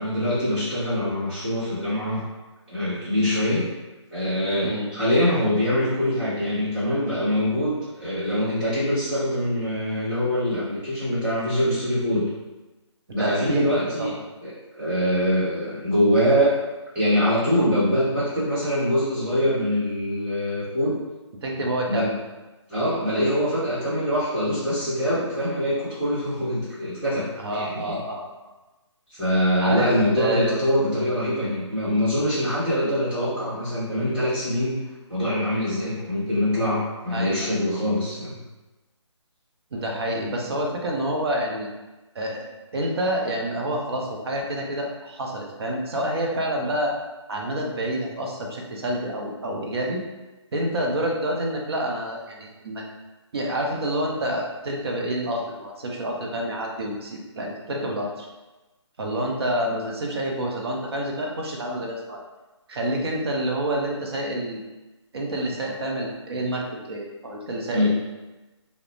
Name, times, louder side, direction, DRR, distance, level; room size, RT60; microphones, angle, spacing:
voice 1, 0.0-2.2 2.7-3.6 4.1-12.2 13.1-14.1 14.4-16.6 16.9-21.0 21.9-22.1 22.7-28.0 29.1-34.8 35.1-38.4 67.7-67.9, equal, 5° right, -15 dB, 1.1 m, -24 dB
voice 2, 13.2-13.7 14.0-14.2 21.4-22.2 27.4-28.2 29.6-29.9 30.1-30.6 37.1-37.5 39.7-41.7 42.1-42.4 42.7-46.9 47.3-50.0 50.5-52.8 53.3-58.3 59.0-62.2 62.7-64.6 65.1-68.0, right 1 dB, 55° right, 0 dB, 0.6 m, -28 dB
2.4 x 2.0 x 3.0 m, 1.1 s
figure-of-eight pair, 150°, 16 cm